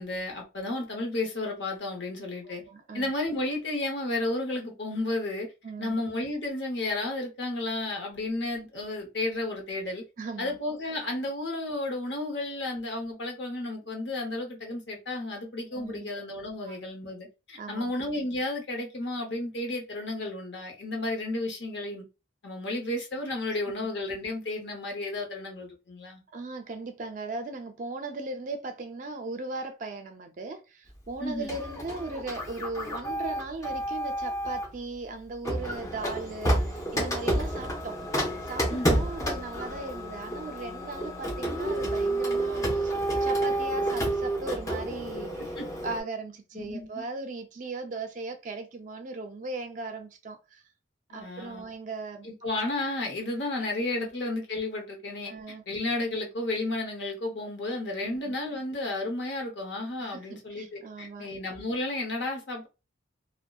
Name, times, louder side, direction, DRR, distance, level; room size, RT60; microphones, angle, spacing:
voice 1, 0.0-2.6 2.9-5.5 5.8-10.0 10.4-22.0 22.4-26.2 31.2-31.5 38.7-39.1 45.6-45.7 46.5-47.0 51.1-51.7 52.2-55.3 55.7-62.7, left 2 dB, 60° left, 0.8 m, -32 dB
voice 2, 2.4-3.1 5.6-6.0 10.2-10.6 15.7-16.1 16.7-16.8 17.6-17.9 26.3-38.0 38.4-42.9 43.2-45.5 45.8-50.6 51.1-52.3 54.0-54.1 55.2-55.6 58.0-58.4 60.0-61.3, right 3 dB, 40° right, 0.4 m, -38 dB
Printer, 31.5-34.7 35.4-46.0, right 1 dB, 15° left, 0.5 m, -30 dB
2.6 x 2.1 x 2.3 m
head